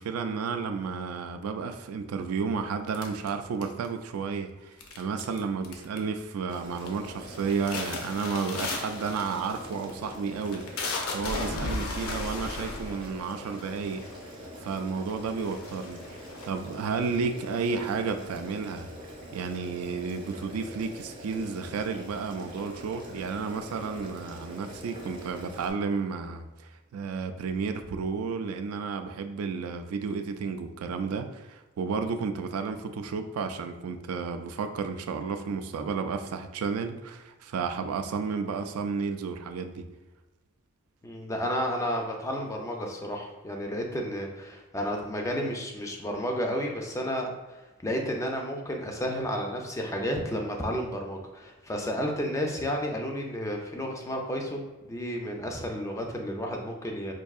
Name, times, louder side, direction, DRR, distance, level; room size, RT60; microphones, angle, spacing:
voice 1, 0.0-10.9 11.1-14.0 14.6-18.9 19.3-39.8, right 5 dB, 75° right, 7 dB, 0.3 m, -32 dB
sound 1, 2.9-4.0 4.8-5.4 5.6-6.2 6.5-6.9 7.3-14.3 15.0-15.1 15.4-17.0, left 2 dB, 70° left, 0.6 m, -35 dB
Boiling, 6.5-25.7, equal, 25° right, 0.6 m, -44 dB
voice 2, 41.0-57.1, equal, 15° left, 1 dB, 0.4 m, -32 dB
4.6 x 2.6 x 2.3 m, 1.1 s
head